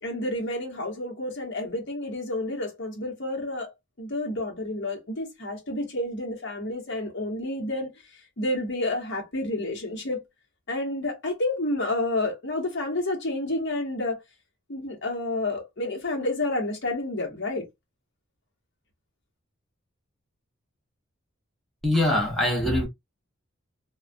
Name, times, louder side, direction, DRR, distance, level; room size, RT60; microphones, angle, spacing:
voice 1, 0.0-3.7 4.0-7.9 8.4-10.2 10.7-14.2 14.7-17.6, left 2 dB, 60° left, 1.0 m, -29 dB
voice 2, 21.8-22.9, left 1 dB, ahead, 0.7 m, -23 dB
2.3 x 2.2 x 2.5 m
head